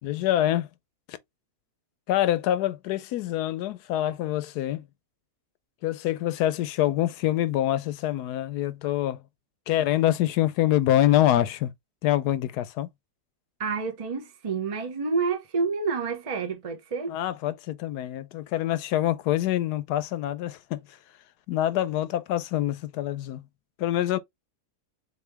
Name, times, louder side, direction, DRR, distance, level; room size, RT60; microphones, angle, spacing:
voice 1, 0.0-0.7 1.1-1.2 2.1-4.8 5.8-9.2 9.7-11.7 12.0-12.9 17.1-20.8 21.5-23.5 23.8-24.2, left 13 dB, 85° left, 1.1 m, -25 dB
voice 2, 13.6-17.2, right 4 dB, 30° right, 0.7 m, -29 dB
4.2 x 3.0 x 3.3 m
omnidirectional pair, 1.7 m